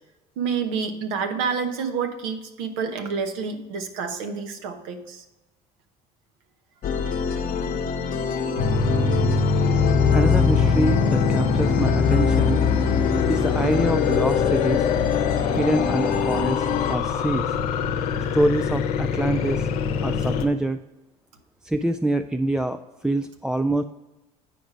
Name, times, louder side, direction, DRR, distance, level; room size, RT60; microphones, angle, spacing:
voice 1, 0.4-5.2, right 6 dB, 75° right, 7 dB, 1.0 m, -28 dB
sound 1, 6.8-17.0, left 7 dB, 45° left, 1.0 m, -25 dB
sound 2, 8.6-20.5, left 5 dB, 80° left, 0.7 m, -23 dB
voice 2, 10.1-12.6 13.3-14.9 15.5-17.5 18.3-19.7 20.0-20.8 21.6-23.8, right 1 dB, 5° right, 7 dB, 0.3 m, -25 dB
sound 3, 10.1-16.5, right 3 dB, 20° right, 0.8 m, -37 dB
9.0 x 5.0 x 4.9 m, 1.0 s
hypercardioid pair, 65°, 19 cm